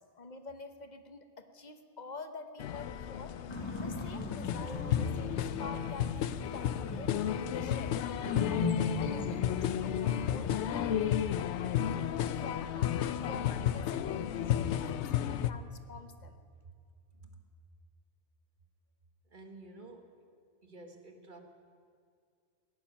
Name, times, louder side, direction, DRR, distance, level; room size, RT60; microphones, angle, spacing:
voice 1, 0.0-3.4 3.8-11.0 11.6-16.4, left 3 dB, 40° left, 9 dB, 1.0 m, -48 dB
sound 1, 2.6-15.5, left 10 dB, 80° left, 0.9 m, -32 dB
sound 2, 3.5-11.1, left 3 dB, 25° left, 1.5 m, -39 dB
voice 2, 19.3-20.2 20.6-21.4, right 2 dB, 45° right, 4 dB, 1.6 m, -51 dB
17.0 x 7.3 x 10.0 m, 2.1 s
omnidirectional pair, 1.1 m